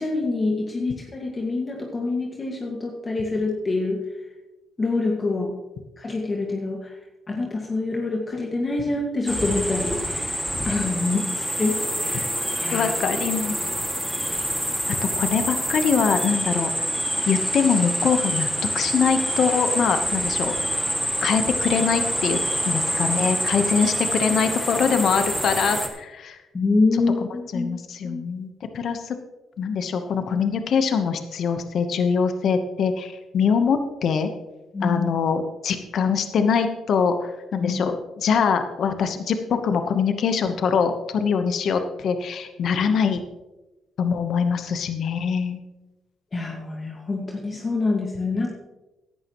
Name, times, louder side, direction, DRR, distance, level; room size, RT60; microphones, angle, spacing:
voice 1, 0.0-4.0 4.8-5.5 6.0-6.9 7.3-11.3 11.6-12.9 26.5-27.8 28.0-28.2 34.7-35.0 37.6-37.7 46.3-48.5, left 3 dB, 30° left, 0 dB, 1.8 m, -26 dB
sound 1, 9.3-25.9, equal, ahead, 2.1 m, -26 dB
voice 2, 12.7-13.6 15.2-16.7 17.3-20.5 21.2-22.4 22.7-26.4 27.5-28.5 28.7-29.2 29.6-34.3 34.8-43.2 44.0-45.6, left 6 dB, 65° left, 7 dB, 1.0 m, -23 dB
16.5 x 11.0 x 3.1 m, 1.1 s
cardioid pair, 90°, 0 cm